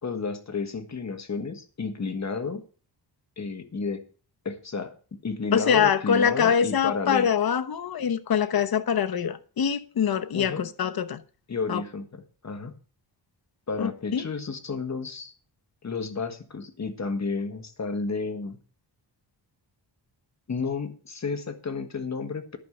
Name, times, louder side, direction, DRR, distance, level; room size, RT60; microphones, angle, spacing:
voice 1, 0.0-2.6 3.4-4.0 4.4-7.3 10.3-10.7 11.5-12.8 13.7-15.3 15.8-18.6 20.5-22.6, left 4 dB, 40° left, 1.6 m, -31 dB
voice 2, 5.5-11.2 11.7-11.8 13.8-14.3, left 7 dB, 55° left, 1.0 m, -24 dB
11.0 x 5.4 x 7.9 m
wide cardioid pair, 110°, 44 cm